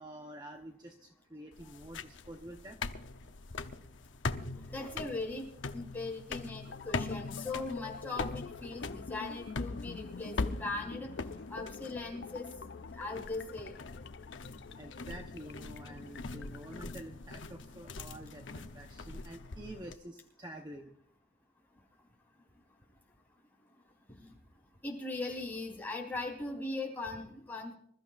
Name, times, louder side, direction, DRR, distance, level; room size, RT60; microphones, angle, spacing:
voice 1, 0.0-2.8 14.4-20.9, right 1 dB, 20° right, 3 dB, 0.9 m, -48 dB
sound 1, 1.5-19.9, left 3 dB, 70° left, 0.8 m, -42 dB
voice 2, 4.7-12.5 13.0-13.7 24.2-24.3 24.8-27.7, left 3 dB, 10° left, -2 dB, 3.7 m, -39 dB
sound 2, 6.6-16.9, left 4 dB, 55° left, 0.5 m, -48 dB
26.0 x 14.0 x 2.5 m, 0.71 s
head